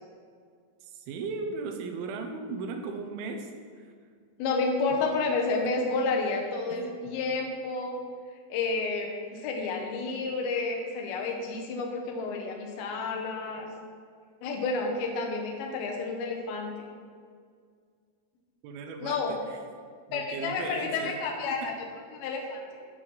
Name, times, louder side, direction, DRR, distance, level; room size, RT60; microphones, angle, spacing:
voice 1, 0.8-3.9 5.6-5.7 6.7-7.2 18.6-19.6 20.1-21.2 21.5-21.7, right 4 dB, 80° right, 5 dB, 2.5 m, -37 dB
voice 2, 4.4-8.0 8.5-13.7 14.4-16.7 19.0-19.3 20.1-21.7 22.1-22.6, left 3 dB, 80° left, 1 dB, 2.7 m, -30 dB
7.7 x 4.8 x 5.6 m, 2.1 s
omnidirectional pair, 4.5 m